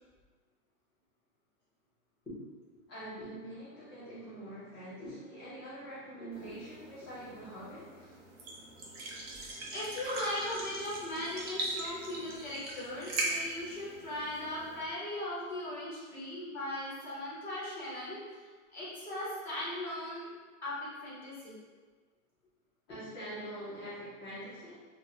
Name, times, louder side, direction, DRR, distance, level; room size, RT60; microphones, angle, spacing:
voice 1, 2.9-8.2 22.9-24.8, right 1 dB, 20° left, -11 dB, 0.4 m, -45 dB
sound 1, 6.3-14.8, right 2 dB, 50° right, 0.7 m, -40 dB
voice 2, 9.7-20.3 20.6-21.6, left 1 dB, 5° left, -8 dB, 0.8 m, -39 dB
3.5 x 2.1 x 2.7 m, 1.4 s
supercardioid pair, 165°, 40 cm